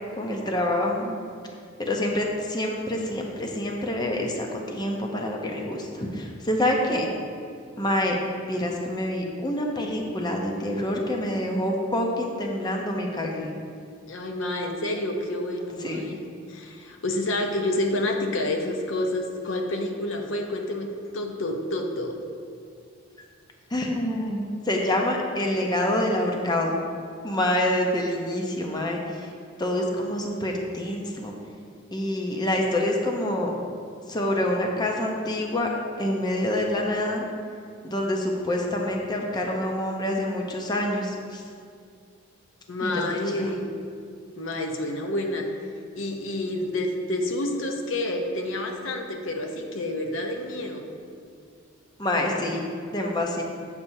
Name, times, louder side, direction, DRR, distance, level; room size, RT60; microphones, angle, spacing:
voice 1, 0.2-1.2 1.8-7.1 7.8-8.2 8.5-13.5 15.8-16.1 23.7-26.7 27.2-29.3 29.6-31.3 31.9-33.5 34.1-35.7 36.0-37.2 37.8-41.4 42.8-43.0 43.3-43.5 52.0-52.7 52.9-53.4, left 1 dB, 20° left, 0 dB, 0.6 m, -26 dB
voice 2, 14.1-16.2 16.5-22.2 42.7-43.7 44.4-45.5 46.0-50.9, left 1 dB, 65° left, 3 dB, 0.8 m, -29 dB
8.1 x 7.1 x 2.7 m, 2.3 s
head